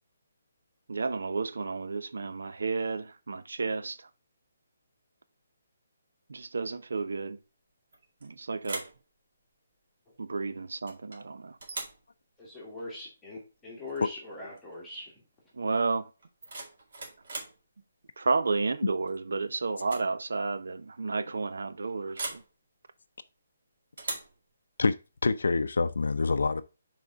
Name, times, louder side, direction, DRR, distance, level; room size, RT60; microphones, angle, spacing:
voice 1, 0.9-4.0 6.3-7.4 8.2-8.9 10.2-11.6 15.6-16.1 18.2-22.4, right 4 dB, 80° right, 0.8 m, -31 dB
sound 1, 7.9-8.3 8.6-9.0 10.9-11.2 11.6-12.0 13.9-14.1 14.4-14.7 16.2-17.6 19.1-19.4 19.8-20.1 20.4-20.5 22.1-22.5 24.0-24.4, right 3 dB, 45° right, 2.1 m, -39 dB
voice 2, 12.4-15.2, left 2 dB, 5° left, 1.4 m, -41 dB
voice 3, 24.8-26.6, left 4 dB, 75° left, 0.5 m, -26 dB
6.5 x 4.3 x 3.6 m
hypercardioid pair, 180°, 0 cm